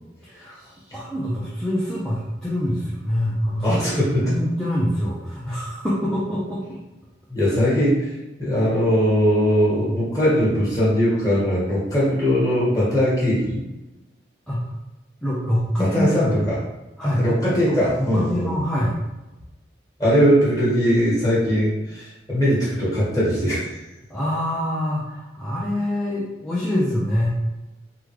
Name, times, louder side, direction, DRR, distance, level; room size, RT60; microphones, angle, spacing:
voice 1, 0.2-3.8 4.2-6.6 14.5-14.7 15.2-16.5 17.0-19.0 24.1-27.3, equal, 5° left, -8 dB, 0.4 m, -25 dB
voice 2, 3.6-4.4 7.3-8.1 8.4-13.6 15.8-16.6 17.2-18.5 20.0-23.8, equal, 20° left, -7 dB, 1.2 m, -20 dB
3.6 x 2.2 x 3.1 m, 1.0 s
head